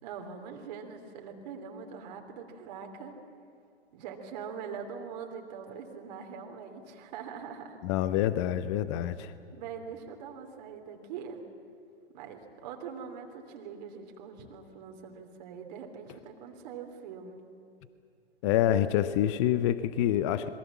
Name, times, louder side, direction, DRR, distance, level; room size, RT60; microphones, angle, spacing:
voice 1, 0.0-3.1 3.9-7.8 9.5-11.4 12.1-17.5, right 6 dB, 40° right, 3 dB, 3.0 m, -43 dB
voice 2, 7.8-9.3 18.4-20.5, left 11 dB, 25° left, 14 dB, 0.7 m, -27 dB
27.0 x 22.0 x 7.3 m, 2.3 s
figure-of-eight pair, 130°, 33 cm